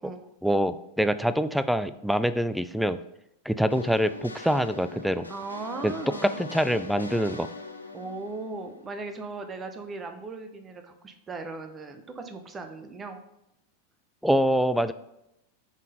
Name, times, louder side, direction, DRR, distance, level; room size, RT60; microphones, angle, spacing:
voice 1, 0.4-3.0 3.5-5.3 5.8-5.9 6.2-7.5 14.2-14.9, equal, ahead, 13 dB, 0.3 m, -25 dB
sound 1, 3.7-9.4, left 2 dB, 80° left, 0.6 m, -42 dB
voice 2, 5.3-6.4 7.9-13.2, right 3 dB, 20° right, 7 dB, 0.8 m, -38 dB
7.2 x 3.9 x 3.9 m, 0.83 s
figure-of-eight pair, 90°, 0 cm